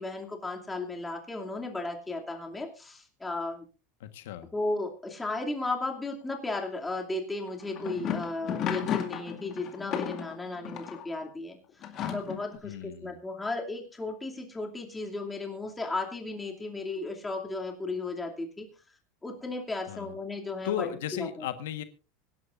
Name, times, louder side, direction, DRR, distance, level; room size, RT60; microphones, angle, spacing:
voice 1, 0.0-3.6 4.5-11.6 12.1-18.7 19.2-21.5, left 2 dB, 10° left, 2 dB, 2.6 m, -35 dB
voice 2, 4.0-4.5 12.6-13.2 19.9-20.1 20.6-21.8, left 10 dB, 90° left, 10 dB, 1.4 m, -35 dB
sound 1, 7.5-11.1 11.8-12.6, left 9 dB, 35° left, 2.3 m, -34 dB
25.0 x 11.0 x 2.5 m, 0.33 s
supercardioid pair, 150°, 0 cm